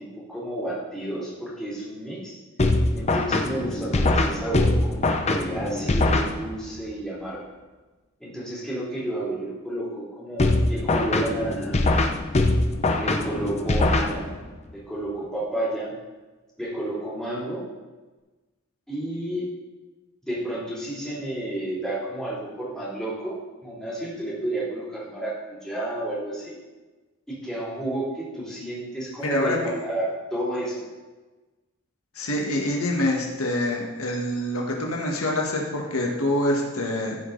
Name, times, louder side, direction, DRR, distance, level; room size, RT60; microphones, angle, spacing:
voice 1, 0.0-2.4 2.9-7.4 8.2-11.8 12.9-14.3 14.7-15.9 16.6-17.6 18.9-19.5 20.2-23.4 23.6-25.3 25.6-26.5 27.3-30.8, right 1 dB, 5° left, -8 dB, 3.0 m, -31 dB
sound 1, 2.6-6.8 10.4-14.6, left 2 dB, 30° left, 0.7 m, -23 dB
voice 2, 29.2-29.6 32.1-37.2, left 1 dB, 85° left, 0 dB, 1.6 m, -25 dB
15.0 x 5.2 x 3.9 m, 1.2 s
head